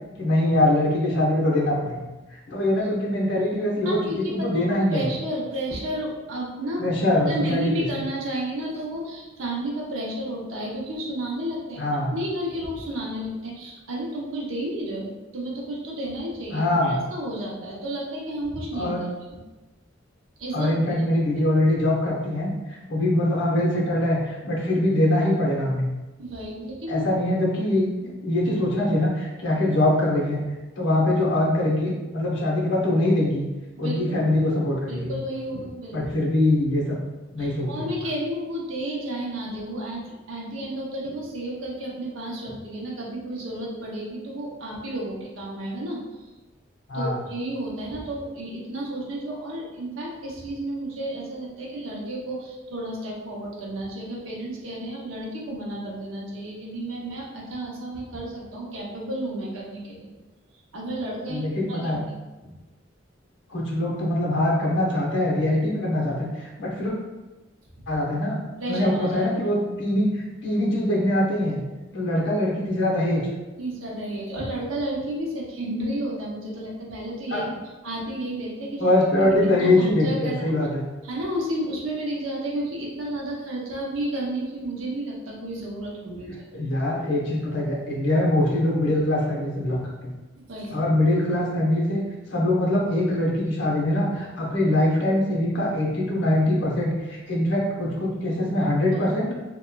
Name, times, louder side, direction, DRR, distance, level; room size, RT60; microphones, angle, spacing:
voice 1, 0.2-2.0 2.5-5.1 6.8-7.6 11.8-12.2 16.5-17.0 18.7-19.1 20.5-25.9 26.9-30.4 30.8-33.4 33.8-35.1 35.9-37.0 37.3-37.9 46.9-47.2 61.3-62.0 62.4-62.5 63.5-66.9 67.9-68.4 68.7-71.6 71.9-73.3 77.3-77.4 78.8-80.8 86.2-90.1 90.7-92.0 92.3-99.3, left 1 dB, 65° left, -3 dB, 0.8 m, -23 dB
voice 2, 3.8-11.8 12.1-19.4 20.4-21.0 26.2-27.0 33.8-34.2 34.9-36.0 37.4-46.0 46.9-60.1 60.7-62.2 67.8-67.9 68.6-69.3 73.6-77.5 77.8-78.8 79.2-80.5 81.0-86.3 90.4-90.8 98.9-99.1, right 1 dB, 85° right, -4 dB, 0.7 m, -32 dB
2.9 x 2.2 x 2.2 m, 1.1 s
head